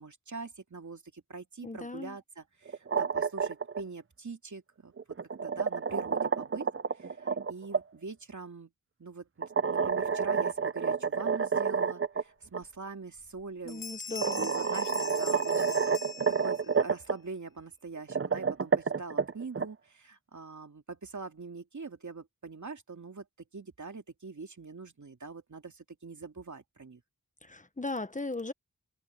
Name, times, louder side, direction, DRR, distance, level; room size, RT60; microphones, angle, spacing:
voice 1, 0.0-4.9 5.4-6.7 6.9-8.7 9.0-15.9 16.4-23.2 23.5-27.0, right 4 dB, 55° right, 2.5 m, -43 dB
voice 2, 1.6-2.2 13.6-14.5 27.4-28.5, left 2 dB, 20° left, 1.2 m, -37 dB
sound 1, 2.7-3.8 5.0-7.8 9.4-12.2 12.5-12.6 13.7-13.8 14.2-17.1 18.0-19.7, right 5 dB, 40° right, 0.8 m, -29 dB
Bell, 12.6-12.7 13.2-13.4 13.7-16.8, left 5 dB, 70° left, 1.0 m, -42 dB
wide cardioid pair, 65°, 34 cm